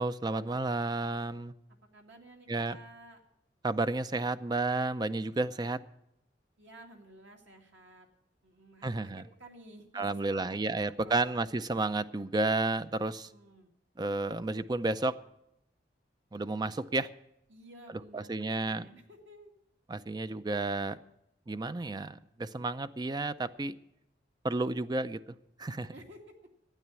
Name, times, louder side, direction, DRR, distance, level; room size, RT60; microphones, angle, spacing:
voice 1, 0.0-1.5 2.5-2.8 3.6-5.8 8.8-9.2 9.9-13.3 14.0-15.1 16.3-17.1 18.1-18.9 19.9-21.0 21.5-23.8 24.4-25.2 25.6-25.9, right 2 dB, 25° right, 12 dB, 0.4 m, -31 dB
voice 2, 1.9-3.2 6.6-8.1 8.4-11.4 13.3-13.7 17.5-19.6 25.9-26.2, right 1 dB, 80° right, 2 dB, 2.2 m, -53 dB
12.5 x 9.1 x 8.3 m, 0.83 s
head